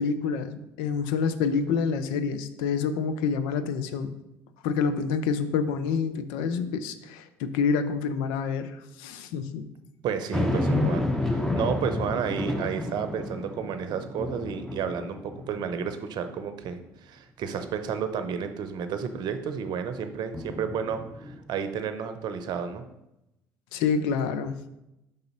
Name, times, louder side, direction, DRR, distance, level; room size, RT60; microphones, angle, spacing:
voice 1, 0.0-4.1 4.6-9.7 23.7-24.6, left 5 dB, 75° left, 11 dB, 0.5 m, -27 dB
voice 2, 10.0-22.8, right 7 dB, 60° right, 9 dB, 0.7 m, -32 dB
sound 1, 10.3-15.9 16.4-16.5 20.3-21.4, left 2 dB, 5° left, 0.9 m, -30 dB
5.4 x 4.0 x 5.3 m, 0.90 s
hypercardioid pair, 60°, 8 cm